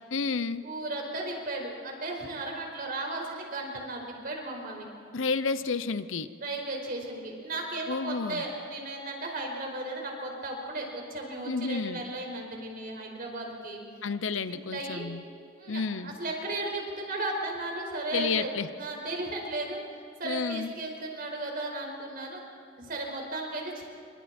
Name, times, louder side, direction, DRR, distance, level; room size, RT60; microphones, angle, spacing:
voice 1, 0.1-0.6 5.1-6.3 7.9-8.4 11.4-12.0 14.0-15.2 15.7-16.2 18.1-18.7 20.2-20.7, left 4 dB, 75° left, 13 dB, 0.8 m, -31 dB
voice 2, 0.6-4.9 6.4-13.8 14.5-15.0 15.6-19.8 20.2-22.4 22.8-23.8, right 2 dB, 50° right, 1 dB, 5.1 m, -35 dB
28.5 x 25.5 x 4.5 m, 2.4 s
head